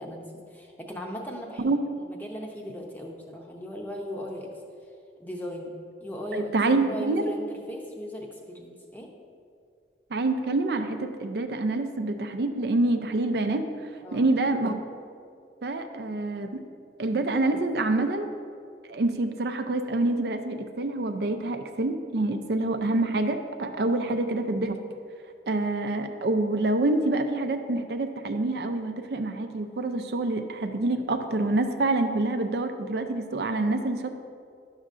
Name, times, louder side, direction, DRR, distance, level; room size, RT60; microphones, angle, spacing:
voice 1, 0.0-1.8 2.1-4.6 5.2-5.7 6.0-6.5 6.9-9.1 14.0-14.3 24.0-24.1, equal, 10° left, 0 dB, 0.7 m, -38 dB
voice 2, 6.3-7.3 10.1-13.6 14.1-14.7 15.6-16.6 17.0-18.3 18.9-24.7 25.5-34.1, right 2 dB, 65° right, 7 dB, 0.4 m, -26 dB
11.0 x 6.4 x 2.5 m, 2.3 s
head